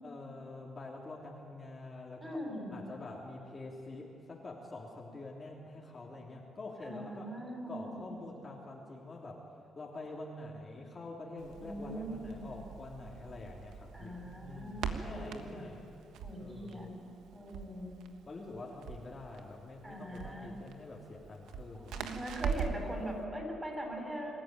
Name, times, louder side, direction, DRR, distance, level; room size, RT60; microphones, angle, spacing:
voice 1, 0.0-2.4 2.7-7.3 7.7-9.5 9.7-15.8 16.4-16.9 18.3-22.1, left 2 dB, 30° left, -3 dB, 3.3 m, -46 dB
voice 2, 2.2-2.7 6.8-8.2 11.6-12.4 13.9-15.6 16.2-16.9 17.3-17.9 19.8-20.5 21.7-24.4, equal, 15° right, 0 dB, 7.6 m, -41 dB
Crackle, 11.4-22.9, right 6 dB, 85° right, 1.4 m, -42 dB
25.5 x 14.5 x 9.1 m, 2.8 s
cardioid pair, 90°, 0 cm